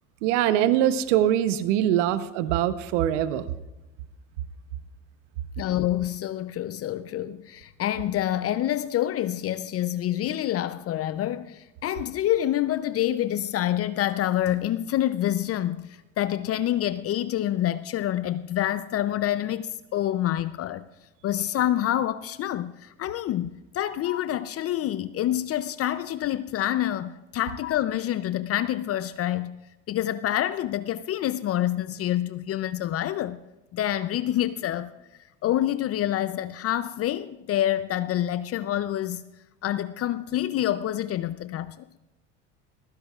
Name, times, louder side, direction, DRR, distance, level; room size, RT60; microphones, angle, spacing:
voice 1, 0.2-3.5, right 11 dB, 75° right, 0.9 m, -23 dB
voice 2, 5.6-20.9 21.2-29.6 29.9-33.4 33.7-34.9 35.4-39.2 39.6-42.0, left 12 dB, 40° left, 0.6 m, -27 dB
22.5 x 15.5 x 2.4 m
hypercardioid pair, 85°, 36 cm